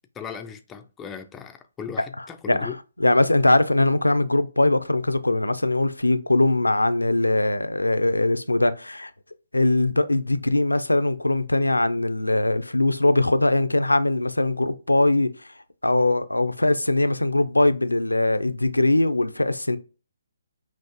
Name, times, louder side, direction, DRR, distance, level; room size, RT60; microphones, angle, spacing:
voice 1, 0.1-2.8, left 7 dB, 10° left, 0.4 m, -37 dB
voice 2, 3.0-9.1 9.5-15.3 15.8-19.8, left 2 dB, 80° left, 0.4 m, -21 dB
5.8 x 2.5 x 2.8 m
figure-of-eight pair, 140°, 0 cm